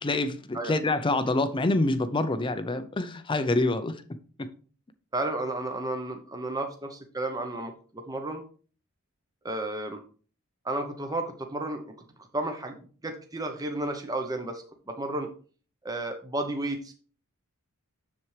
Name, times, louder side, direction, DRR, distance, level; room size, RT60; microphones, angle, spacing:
voice 1, 0.0-4.0 4.4-4.5, left 2 dB, 20° left, 0.5 m, -26 dB
voice 2, 5.1-8.4 9.4-10.0 10.6-11.9 12.3-12.8 13.0-15.3 15.8-16.9, right 2 dB, 15° right, 0.7 m, -32 dB
7.4 x 7.0 x 3.2 m
head